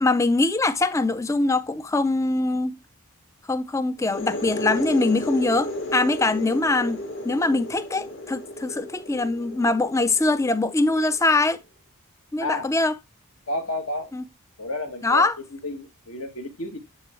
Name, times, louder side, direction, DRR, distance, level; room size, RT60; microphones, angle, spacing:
voice 1, 0.0-2.8 3.5-7.0 7.2-11.6 12.3-12.9 14.1-14.2 15.0-15.4, left 2 dB, 15° left, 0.3 m, -22 dB
sound 1, 4.0-11.5, left 1 dB, 55° left, 1.7 m, -34 dB
voice 2, 13.5-14.1 14.6-15.3 15.6-16.8, left 1 dB, 70° left, 1.6 m, -31 dB
9.7 x 3.4 x 3.1 m
head